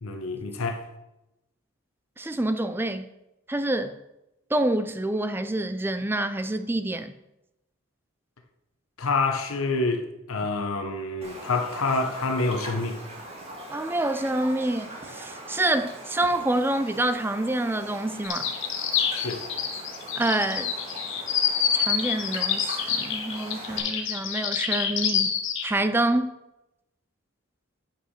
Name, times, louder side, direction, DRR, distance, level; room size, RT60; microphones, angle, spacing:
voice 1, 0.0-0.9 9.0-13.0 19.1-19.4, left 3 dB, 85° left, 0.9 m, -27 dB
voice 2, 2.2-3.1 3.5-4.0 4.5-7.1 13.7-18.5 20.2-20.7 21.7-25.3 25.6-26.3, right 1 dB, 10° right, 0.4 m, -27 dB
Raindrop, 11.2-23.8, right 1 dB, 30° right, 1.6 m, -41 dB
sound 1, 18.2-25.7, left 8 dB, 60° left, 1.0 m, -27 dB
8.6 x 5.7 x 5.7 m
head